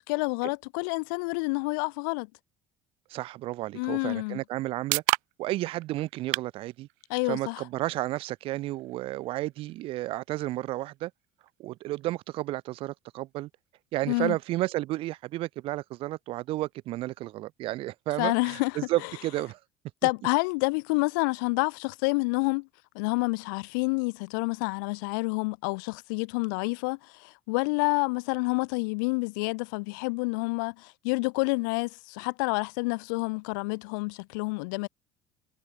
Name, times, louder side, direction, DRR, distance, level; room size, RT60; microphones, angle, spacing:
voice 1, 0.0-2.3 3.7-4.4 7.1-7.6 14.1-14.3 18.2-18.7 20.0-22.7 22.9-34.9, left 30 dB, 85° left, 1.0 m, -28 dB
voice 2, 3.1-5.0 5.4-6.9 7.3-11.1 11.6-13.5 13.9-19.6, right 17 dB, 65° right, 2.3 m, -32 dB
sound 1, 4.2-18.1, right 40 dB or more, 80° right, 4.1 m, -40 dB
supercardioid pair, 95°, 10 cm